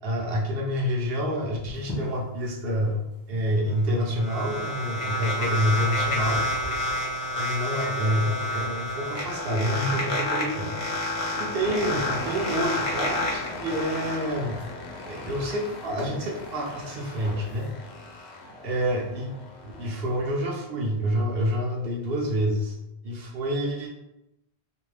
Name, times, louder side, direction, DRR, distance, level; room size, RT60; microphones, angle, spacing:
voice 1, 0.0-3.0 3.3-6.4 7.4-10.8 11.3-14.6 15.0-17.7 18.6-19.3 19.6-22.8 23.0-23.9, equal, 65° right, -1 dB, 0.8 m, -28 dB
sound 1, 1.7-17.7, left 1 dB, 15° left, 0.6 m, -45 dB
sound 2, 3.7-14.1, left 1 dB, 50° left, 0.9 m, -29 dB
sound 3, 11.6-20.3, left 2 dB, 85° left, 0.9 m, -39 dB
2.5 x 2.1 x 3.2 m, 0.88 s
omnidirectional pair, 1.1 m